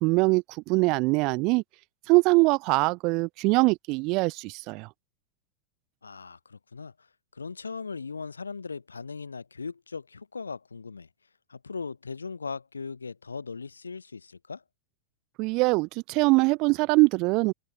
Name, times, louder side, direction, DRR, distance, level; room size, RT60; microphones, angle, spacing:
voice 1, 0.0-1.6 2.1-4.9 15.4-17.5, right 26 dB, 40° right, 0.9 m, -23 dB
voice 2, 6.0-7.1 7.3-11.1 11.5-14.6, left 5 dB, 75° left, 5.0 m, -38 dB
figure-of-eight pair, 90°, 0 cm